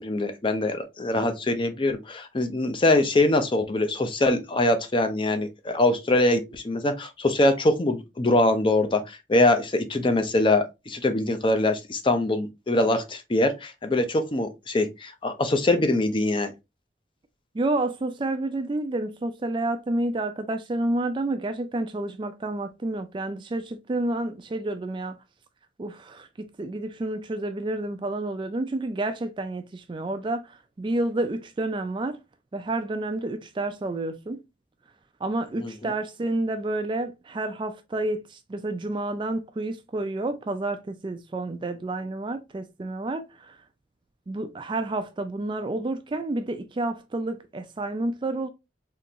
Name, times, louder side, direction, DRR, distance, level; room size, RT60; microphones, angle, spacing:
voice 1, 0.0-16.5 35.6-35.7, left 2 dB, 30° left, 0.5 m, -23 dB
voice 2, 17.5-25.2 25.8-32.2 32.5-34.4 35.2-43.6 44.3-48.5, right 2 dB, 25° right, 0.3 m, -29 dB
3.7 x 2.9 x 2.7 m
head